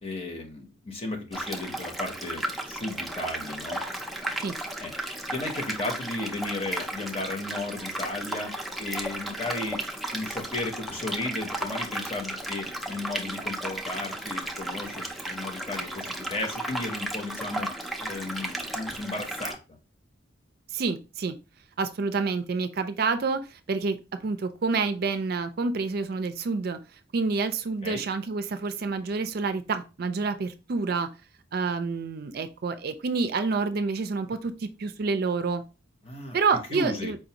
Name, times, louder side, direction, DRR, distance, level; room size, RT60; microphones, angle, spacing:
voice 1, 0.0-3.8 4.8-4.9 5.3-8.5 8.8-9.8 10.1-19.8 27.8-28.0 36.0-36.4 36.7-37.1, left 2 dB, 30° left, 4 dB, 0.9 m, -34 dB
sound 1, 1.3-19.6, right 1 dB, ahead, 0.5 m, -34 dB
voice 2, 20.7-21.3 21.8-24.0 24.2-26.8 27.1-31.1 31.5-35.6 36.3-37.2, right 4 dB, 55° right, 9 dB, 0.4 m, -28 dB
4.8 x 2.6 x 2.9 m, 0.30 s
head